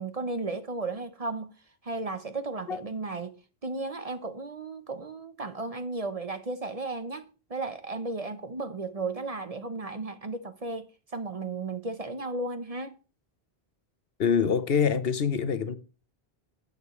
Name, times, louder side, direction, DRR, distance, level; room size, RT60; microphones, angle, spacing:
voice 1, 0.0-1.5 1.8-3.4 3.6-13.0, right 3 dB, 40° right, 0.9 m, -34 dB
voice 2, 14.2-15.8, left 6 dB, 65° left, 1.1 m, -25 dB
18.0 x 6.7 x 3.1 m
omnidirectional pair, 1.1 m